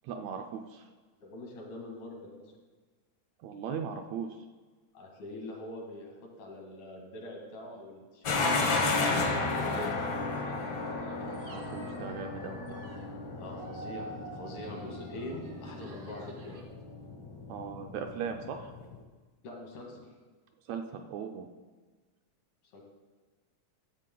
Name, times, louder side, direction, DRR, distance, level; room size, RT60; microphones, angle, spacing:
voice 1, 0.0-0.9 3.4-4.4 11.2-12.8 17.5-18.7 20.7-21.5, right 6 dB, 80° right, 5 dB, 1.6 m, -38 dB
voice 2, 1.2-2.5 4.9-10.0 13.4-16.6 19.4-20.0 22.7-22.8, left 1 dB, 80° left, 0 dB, 3.5 m, -43 dB
sound 1, 8.2-19.0, left 3 dB, 60° left, 1.1 m, -33 dB
sound 2, 10.2-13.1 13.4-16.6, right 3 dB, 55° right, 0.9 m, -49 dB
13.0 x 7.9 x 3.8 m, 1.4 s
omnidirectional pair, 3.5 m